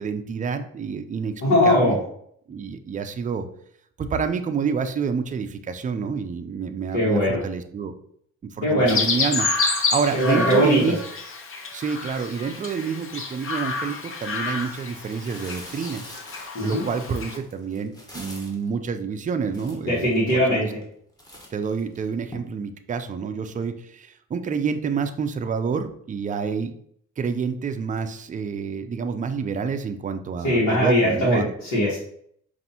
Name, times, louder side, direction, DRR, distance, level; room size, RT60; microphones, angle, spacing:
voice 1, 0.0-2.0 2.5-3.5 4.0-7.9 8.5-11.0 11.7-16.1 16.6-20.1 20.5-20.7 21.5-26.7 27.2-31.5, right 6 dB, 25° right, 8 dB, 0.4 m, -28 dB
voice 2, 1.4-2.0 6.9-7.4 8.6-9.0 10.1-10.9 16.5-16.8 19.8-20.7 30.4-32.0, left 1 dB, 70° left, -8 dB, 1.5 m, -20 dB
Chirp tweet, 8.9-17.4, left 4 dB, 45° left, 0.8 m, -29 dB
sound 1, 14.9-18.7 19.2-19.3 19.5-20.2 20.7-20.9 21.2-22.4, equal, 15° left, 1.1 m, -44 dB
5.2 x 2.6 x 2.8 m, 0.66 s
cardioid pair, 90°, 30 cm